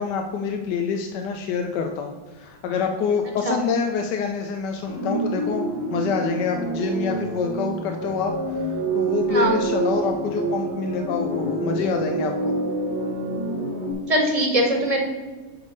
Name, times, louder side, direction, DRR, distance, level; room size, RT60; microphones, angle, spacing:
voice 1, 0.0-12.5, left 6 dB, 70° left, 4 dB, 1.3 m, -26 dB
sound 1, 4.9-13.9, right 2 dB, 70° right, 2.7 m, -27 dB
voice 2, 9.2-9.6 14.1-15.1, right 1 dB, 20° right, 1 dB, 1.3 m, -21 dB
9.4 x 3.5 x 6.5 m, 1.3 s
omnidirectional pair, 2.0 m